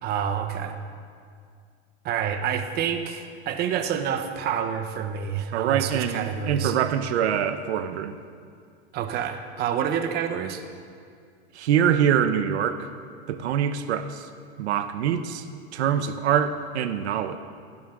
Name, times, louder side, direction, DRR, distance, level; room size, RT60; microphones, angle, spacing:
voice 1, 0.0-0.8 2.0-6.8 8.9-10.6, right 8 dB, 30° right, 7 dB, 1.1 m, -28 dB
voice 2, 5.5-8.2 11.5-12.9 13.3-14.3 14.6-15.4 15.7-17.4, right 9 dB, 80° right, 10 dB, 1.1 m, -24 dB
28.0 x 11.5 x 3.9 m, 2.1 s
supercardioid pair, 150°, 32 cm